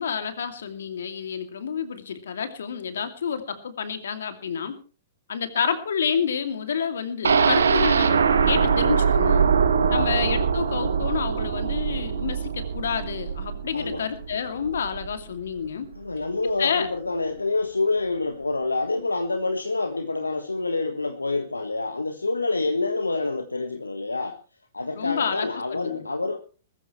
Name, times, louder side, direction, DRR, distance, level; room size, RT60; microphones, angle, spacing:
voice 1, 0.0-4.7 5.3-9.5 9.9-15.9 16.4-16.9 24.9-26.1, left 7 dB, 65° left, 8 dB, 2.5 m, -29 dB
sound 1, 7.2-15.1 15.5-15.6 15.9-16.0, right 6 dB, 75° right, 1.7 m, -22 dB
voice 2, 9.9-10.2 13.7-14.0 16.0-24.4 24.7-26.4, left 3 dB, 85° left, 7 dB, 1.4 m, -27 dB
20.5 x 14.5 x 3.2 m, 0.37 s
figure-of-eight pair, 110°, 0 cm